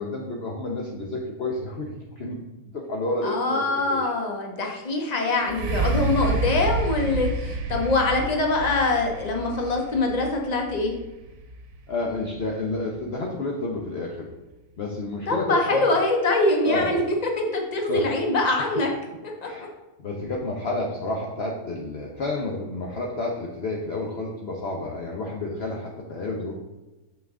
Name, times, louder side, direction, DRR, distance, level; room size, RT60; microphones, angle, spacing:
voice 1, 0.0-2.4 2.6-4.1 11.9-14.3 14.8-15.9 16.7-17.0 17.9-18.1 19.4-19.7 20.0-26.5, left 2 dB, 50° left, -1 dB, 1.0 m, -30 dB
voice 2, 3.2-10.9 15.3-18.9 19.4-19.5, left 2 dB, 30° left, 1 dB, 1.2 m, -24 dB
sound 1, 5.4-13.2 13.8-13.9, right 3 dB, 70° right, 1.3 m, -29 dB
7.2 x 5.8 x 3.6 m, 1.1 s
omnidirectional pair, 1.5 m